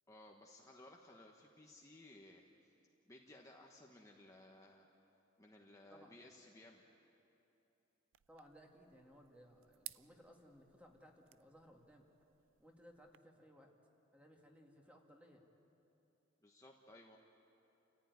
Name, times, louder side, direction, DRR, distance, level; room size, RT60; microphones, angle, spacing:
voice 1, 0.1-2.7 3.1-4.9 5.4-6.8 16.4-17.2, left 1 dB, 15° left, 0 dB, 1.2 m, -59 dB
sound 1, 8.1-13.2, right 16 dB, 75° right, 0.4 m, -58 dB
voice 2, 8.3-12.1 12.6-13.7 14.1-15.5, equal, 5° right, 1 dB, 2.3 m, -62 dB
29.5 x 14.5 x 9.6 m, 2.9 s
head